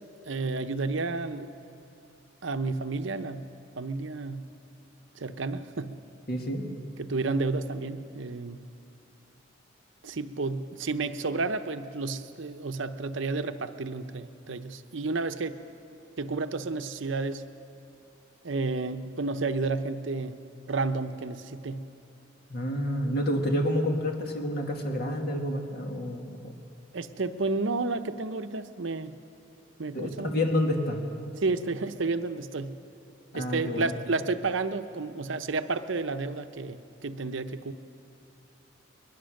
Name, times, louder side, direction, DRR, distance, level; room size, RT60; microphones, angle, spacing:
voice 1, 0.2-1.5 2.4-3.5 3.8-4.5 5.2-6.0 7.0-8.7 10.0-15.6 16.2-17.4 18.4-20.4 20.7-21.9 26.9-29.1 29.8-30.3 31.4-32.8 33.3-37.7, right 3 dB, 70° right, 10 dB, 0.8 m, -31 dB
voice 2, 6.3-6.6 22.5-26.3 29.9-31.0 33.3-33.9, left 1 dB, 50° left, 2 dB, 2.3 m, -29 dB
21.5 x 21.5 x 6.5 m, 2.7 s
head